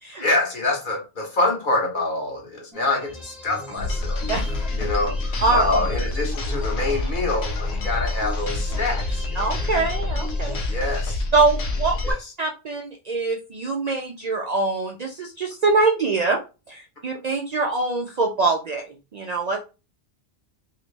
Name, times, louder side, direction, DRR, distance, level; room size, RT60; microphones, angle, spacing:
voice 1, 0.2-9.6 10.7-11.2 12.0-12.3, left 2 dB, 50° left, 1 dB, 1.2 m, -26 dB
sound 1, 2.7-10.7, left 2 dB, ahead, 0.7 m, -40 dB
sound 2, 3.8-12.1, left 2 dB, 75° left, 1.0 m, -27 dB
voice 2, 9.4-10.6 11.3-16.4 16.7-19.6, right 3 dB, 55° right, 2 dB, 0.5 m, -24 dB
3.0 x 2.8 x 3.2 m, 0.30 s
omnidirectional pair, 1.1 m